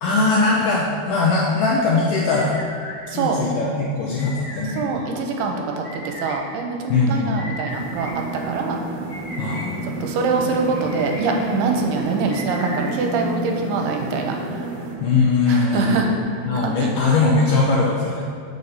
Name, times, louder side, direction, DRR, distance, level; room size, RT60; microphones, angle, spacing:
voice 1, 0.0-2.6 3.1-5.1 6.9-7.4 9.4-9.7 15.0-16.1 16.5-18.2, left 3 dB, 80° left, -3 dB, 1.9 m, -20 dB
sound 1, 2.2-3.0 4.2-4.8 5.8-6.3 7.3-8.1 9.1-9.6 10.7-11.2 12.3-12.9, equal, 50° left, 2.2 m, -36 dB
voice 2, 3.1-3.4 4.8-8.1 8.4-8.8 9.8-14.7 15.5-16.1 16.6-16.9, right 4 dB, 85° right, 2 dB, 2.7 m, -24 dB
sound 2, 7.7-15.0, right 2 dB, 65° right, 2.3 m, -30 dB
6.7 x 4.2 x 6.4 m, 2.4 s
omnidirectional pair, 4.6 m